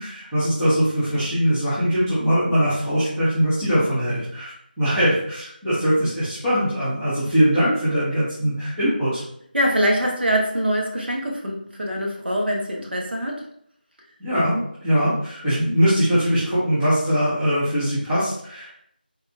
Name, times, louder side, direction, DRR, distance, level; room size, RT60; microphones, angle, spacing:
voice 1, 0.0-9.2 14.2-18.7, equal, 5° right, -15 dB, 0.4 m, -21 dB
voice 2, 9.5-13.5, equal, 75° right, -1 dB, 0.9 m, -23 dB
3.4 x 2.3 x 2.8 m, 0.69 s
figure-of-eight pair, 170°, 5 cm